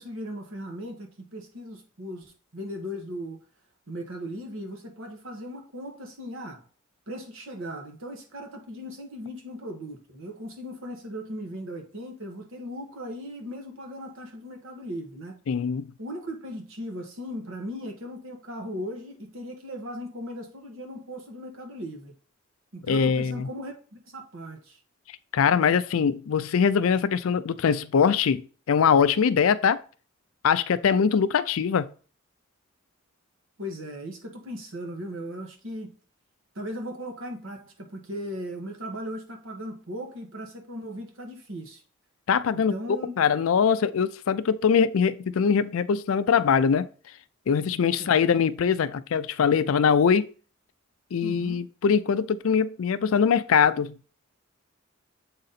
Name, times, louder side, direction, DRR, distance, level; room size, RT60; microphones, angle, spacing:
voice 1, 0.0-3.4 3.9-6.6 7.1-15.4 16.0-22.1 22.7-24.8 33.6-35.9 36.5-41.8 42.7-43.2 48.0-48.2 51.2-51.6, equal, 70° right, 1.3 m, -38 dB
voice 2, 15.5-15.9 22.9-23.5 25.3-28.4 28.7-29.8 30.4-31.9 42.3-42.8 43.2-46.9 47.5-50.3 51.1-54.0, left 6 dB, 75° left, 0.4 m, -22 dB
7.5 x 3.9 x 4.1 m
head